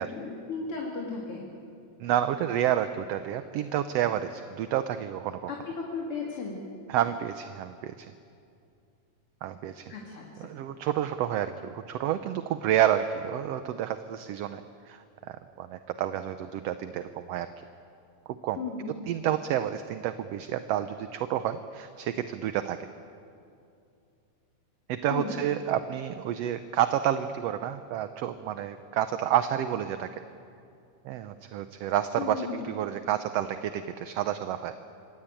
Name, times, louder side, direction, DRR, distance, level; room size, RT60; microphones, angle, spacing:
voice 1, 0.0-1.4 5.5-6.6 9.9-10.5 18.6-19.0 25.1-25.4 32.2-32.7, left 4 dB, 50° left, -2 dB, 3.2 m, -35 dB
voice 2, 2.0-5.5 6.9-8.1 9.4-9.8 10.4-14.6 14.9-17.5 18.4-18.6 19.1-22.8 24.9-30.1 31.0-34.9, right 11 dB, 70° right, 10 dB, 1.7 m, -29 dB
26.0 x 22.0 x 9.0 m, 2.5 s
omnidirectional pair, 3.3 m